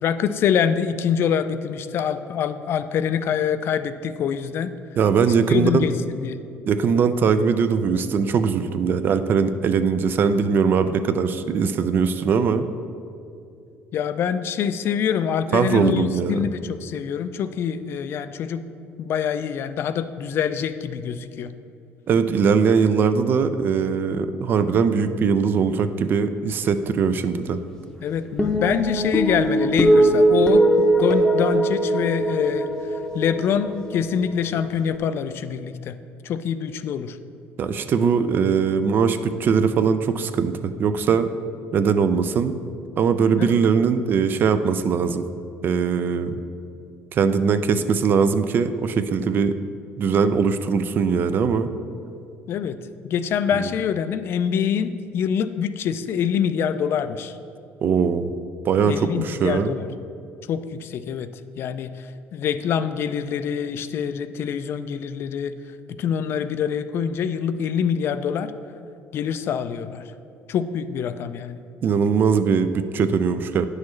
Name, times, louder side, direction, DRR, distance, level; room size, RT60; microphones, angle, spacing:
voice 1, 0.0-4.7 5.2-6.4 13.9-18.6 19.0-21.5 28.0-32.7 33.1-36.0 36.2-37.2 43.4-43.5 52.5-52.8 53.0-57.4 58.9-59.9 60.5-61.3 61.6-65.5 65.9-68.5 69.1-70.1 70.5-71.6, left 8 dB, 50° left, 12 dB, 0.3 m, -25 dB
voice 2, 5.0-5.8 6.7-12.6 15.5-16.4 22.1-27.6 37.6-41.3 41.7-42.5 43.0-45.2 45.6-46.4 47.1-49.6 50.0-51.7 57.8-58.3 58.6-59.7 71.8-73.7, right 6 dB, 40° right, 10 dB, 0.4 m, -21 dB
sound 1, 28.4-35.0, right 1 dB, 10° left, 0.7 m, -21 dB
9.4 x 6.3 x 3.2 m, 2.5 s
cardioid pair, 130°, 5 cm